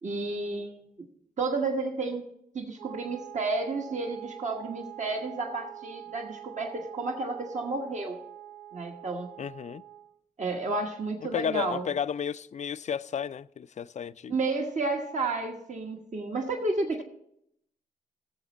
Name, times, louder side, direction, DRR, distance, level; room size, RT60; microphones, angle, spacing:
voice 1, 0.0-0.8 1.4-2.2 2.5-8.2 8.7-9.3 10.4-11.9 14.3-17.0, right 3 dB, 50° right, 1.2 m, -31 dB
Wind instrument woodwind instrument, 2.8-10.2, right 12 dB, 70° right, 0.7 m, -45 dB
voice 2, 9.4-9.8 11.2-14.3, left 7 dB, 50° left, 0.4 m, -32 dB
15.5 x 7.1 x 4.2 m
cardioid pair, 45°, 15 cm